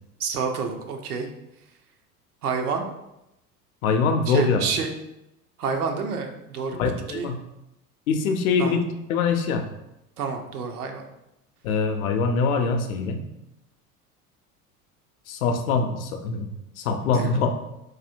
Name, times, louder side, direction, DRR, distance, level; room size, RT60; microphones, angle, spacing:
voice 1, 0.2-1.3 2.4-2.9 4.3-4.9 5.6-6.8 7.1-7.3 8.6-8.8 10.2-11.1 17.1-17.4, right 5 dB, 70° right, 4 dB, 0.7 m, -28 dB
voice 2, 3.8-4.7 6.7-7.4 8.1-9.6 11.6-13.2 15.3-16.5 16.8-17.6, left 4 dB, 65° left, 5 dB, 0.6 m, -23 dB
4.0 x 2.7 x 2.6 m, 0.88 s
figure-of-eight pair, 75°, 47 cm